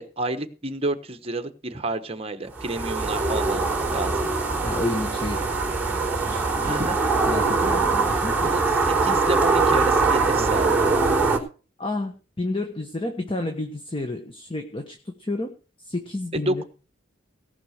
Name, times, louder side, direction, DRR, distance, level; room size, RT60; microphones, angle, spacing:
voice 1, 0.0-4.2 6.6-7.0 8.5-8.6 9.0-10.8 16.3-16.6, right 2 dB, 30° right, 8 dB, 1.2 m, -29 dB
sound 1, 2.6-11.4, right 3 dB, 5° right, 3.5 m, -22 dB
voice 2, 4.6-5.4 6.2-6.7 7.3-8.5 11.8-15.5 15.8-16.6, left 2 dB, 25° left, 5 dB, 1.2 m, -30 dB
17.5 x 5.9 x 6.6 m, 0.36 s
head